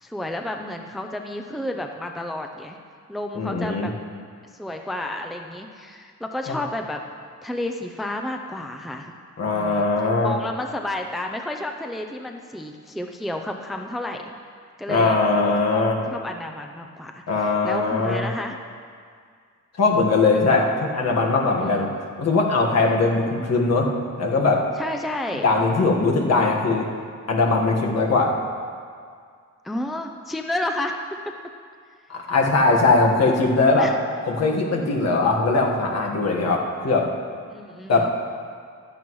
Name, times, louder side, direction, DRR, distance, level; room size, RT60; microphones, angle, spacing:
voice 1, 0.0-2.8 3.1-3.9 4.5-7.0 7.4-9.2 9.5-9.9 10.2-14.3 14.8-15.2 15.7-15.8 16.1-18.6 21.6-22.1 24.8-25.5 29.6-31.3 33.8-34.0 37.5-38.1, left 1 dB, ahead, 4 dB, 0.5 m, -31 dB
voice 2, 3.3-3.9 6.5-6.6 9.4-10.3 14.9-16.0 17.3-18.3 19.8-21.9 22.2-23.9 24.2-24.6 25.4-26.9 27.3-28.3 32.1-33.9 34.3-37.1 37.9-38.1, left 3 dB, 55° left, 0 dB, 1.5 m, -20 dB
15.5 x 12.0 x 3.1 m, 2.1 s
wide cardioid pair, 140°, 30 cm